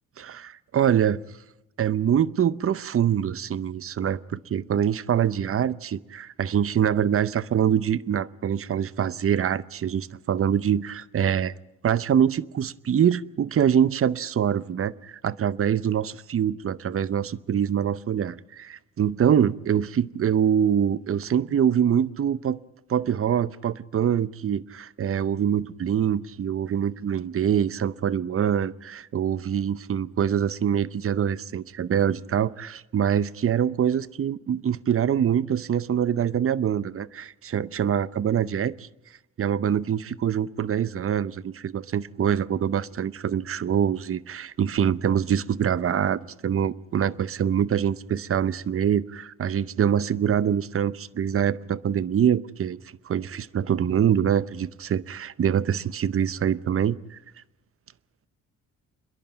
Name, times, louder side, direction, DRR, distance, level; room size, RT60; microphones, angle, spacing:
voice 1, 0.2-1.2 1.8-11.5 11.8-22.6 22.9-38.9 39.4-52.8 53.0-57.2, right 8 dB, 45° right, 0.7 m, -24 dB
28.0 x 11.0 x 9.4 m
cardioid pair, 75°, 31 cm